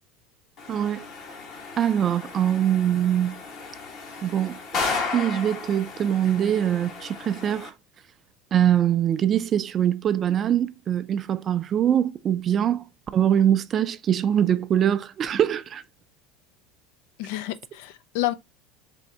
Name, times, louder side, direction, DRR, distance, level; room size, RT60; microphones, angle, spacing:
sound 1, 0.6-7.7, left 4 dB, 50° left, 1.1 m, -34 dB
voice 1, 0.7-1.1 1.8-3.4 4.2-4.8 5.1-7.7 8.5-12.8 13.1-15.8, right 10 dB, 35° right, 0.4 m, -23 dB
voice 2, 17.2-18.3, left 16 dB, 75° left, 0.4 m, -29 dB
3.5 x 2.6 x 4.0 m
supercardioid pair, 105°, 0 cm